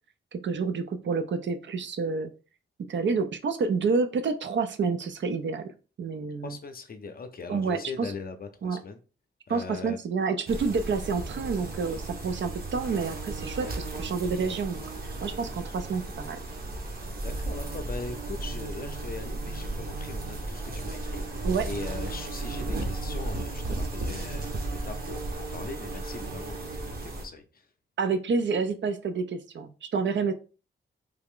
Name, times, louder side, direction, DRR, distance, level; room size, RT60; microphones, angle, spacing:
voice 1, 0.3-2.3 2.8-6.6 7.5-8.1 8.6-8.8 9.5-16.4 21.4-21.7 28.0-30.3, right 4 dB, 60° right, 0.5 m, -29 dB
voice 2, 6.4-9.0 9.5-10.0 13.6-13.7 17.2-27.7, left 4 dB, 45° left, 0.5 m, -40 dB
sound 1, 10.5-27.3, right 2 dB, 45° right, 0.9 m, -35 dB
3.4 x 2.4 x 3.6 m
wide cardioid pair, 100°, 21 cm